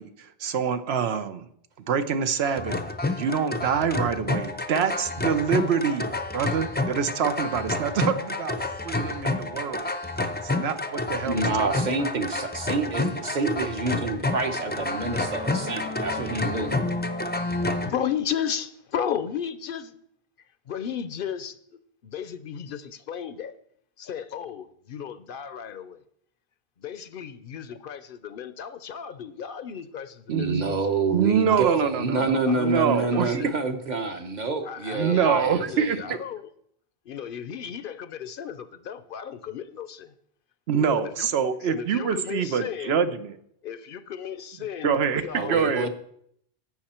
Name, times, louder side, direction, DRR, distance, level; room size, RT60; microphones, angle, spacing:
voice 1, 0.0-1.5 1.9-2.8 3.2-6.0 6.3-8.5 8.8-9.9 10.4-11.7 30.3-30.6 31.1-33.4 34.9-36.0 40.7-43.3 44.8-45.9, right 7 dB, 85° right, 11 dB, 1.0 m, -25 dB
sound 1, 2.4-17.9, left 2 dB, 15° left, 0.4 m, -29 dB
voice 2, 11.2-16.9 30.3-36.0 45.3-45.9, right 3 dB, 45° right, 7 dB, 1.1 m, -27 dB
voice 3, 17.6-19.9 20.7-21.6 22.0-23.5 24.0-26.0 26.8-30.8 31.5-31.8 32.5-33.5 34.6-36.5 37.1-40.1 40.7-41.3 41.6-43.0 43.6-45.9, left 8 dB, 65° left, 13 dB, 0.7 m, -34 dB
12.0 x 7.7 x 4.3 m, 0.70 s
omnidirectional pair, 1.0 m